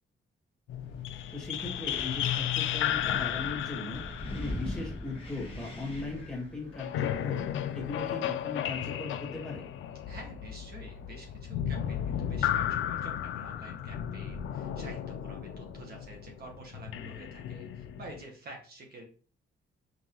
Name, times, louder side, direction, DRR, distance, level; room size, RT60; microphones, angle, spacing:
sound 1, 0.7-5.7 6.7-18.2, left 10 dB, 90° left, 0.4 m, -34 dB
Wind, 0.8-8.1, left 1 dB, 30° left, 1.1 m, -42 dB
voice 1, 1.3-4.0 4.3-7.5 7.7-9.6, left 3 dB, 5° left, -4 dB, 1.6 m, -38 dB
voice 2, 10.1-19.0, right 2 dB, 50° right, 1 dB, 1.0 m, -49 dB
5.3 x 2.6 x 2.9 m, 0.40 s
wide cardioid pair, 160°, 20 cm